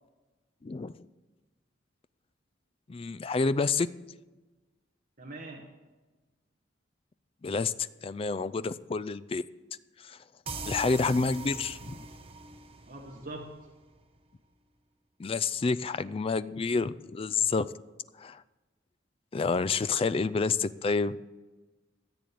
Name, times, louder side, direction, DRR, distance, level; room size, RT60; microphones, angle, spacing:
voice 1, 0.6-1.0 2.9-3.9 7.4-9.4 10.0-10.2 10.7-12.0 15.2-17.7 18.2-18.4 19.3-21.2, left 4 dB, 30° left, 16 dB, 0.3 m, -29 dB
voice 2, 5.2-5.8 12.9-13.7, right 2 dB, 45° right, 0 dB, 1.3 m, -43 dB
sound 1, 10.5-14.0, right 3 dB, 30° right, 0.9 m, -42 dB
14.0 x 7.8 x 6.8 m, 1.2 s
head